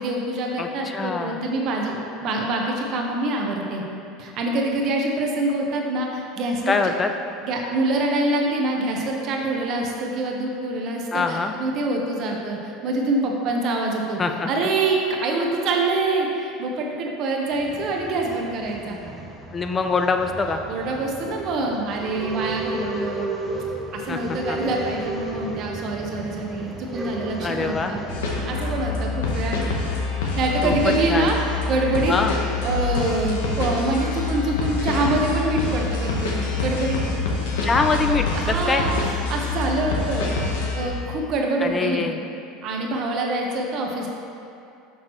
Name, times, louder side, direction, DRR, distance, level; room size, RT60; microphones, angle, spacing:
voice 1, 0.0-3.8 4.2-6.8 7.4-14.2 14.5-19.0 20.7-23.3 23.9-28.1 28.5-29.7 30.4-31.4 31.7-32.1 32.6-37.0 38.3-40.3 40.7-42.1 42.6-44.1, right 2 dB, 55° right, 0 dB, 1.0 m, -25 dB
voice 2, 0.6-1.4 6.7-7.1 11.1-11.5 14.2-14.5 19.5-20.6 24.1-24.6 27.4-27.9 30.6-31.3 32.1-32.4 37.6-38.8 41.6-42.2, left 4 dB, 25° left, 6 dB, 0.4 m, -24 dB
Male speech man speaking / Chatter / Rattle, 17.5-29.4, right 2 dB, 10° right, 0.9 m, -33 dB
sound 1, 28.1-40.9, left 3 dB, 80° left, 0.9 m, -26 dB
6.3 x 5.8 x 3.1 m, 2.7 s
hypercardioid pair, 85°, 0 cm